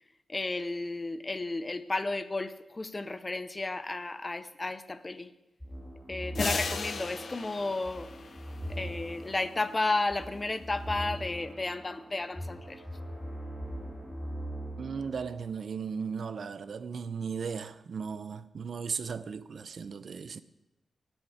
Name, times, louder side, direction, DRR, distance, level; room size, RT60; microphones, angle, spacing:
voice 1, 0.3-5.3 6.1-8.1 8.7-12.8, left 2 dB, 25° left, 0.8 m, -33 dB
sound 1, 5.6-15.1, equal, 5° left, 3.1 m, -41 dB
sound 2, 6.3-9.1, left 5 dB, 55° left, 1.0 m, -36 dB
voice 2, 14.8-20.4, right 6 dB, 60° right, 0.7 m, -36 dB
18.0 x 7.3 x 9.3 m
wide cardioid pair, 135°, 0 cm